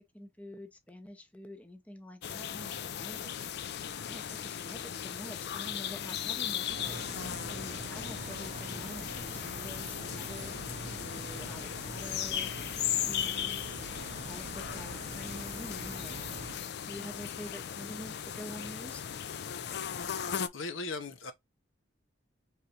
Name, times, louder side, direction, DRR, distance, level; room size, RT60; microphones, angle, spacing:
voice 1, 0.1-13.8 14.3-16.2 16.5-19.0, equal, 5° left, 0.6 m, -47 dB
sound 1, 2.2-20.5, left 9 dB, 55° left, 0.4 m, -37 dB
sound 2, 6.7-16.6, right 3 dB, 35° right, 0.4 m, -45 dB
voice 2, 19.9-21.3, left 3 dB, 80° left, 0.8 m, -40 dB
3.9 x 3.4 x 2.8 m
head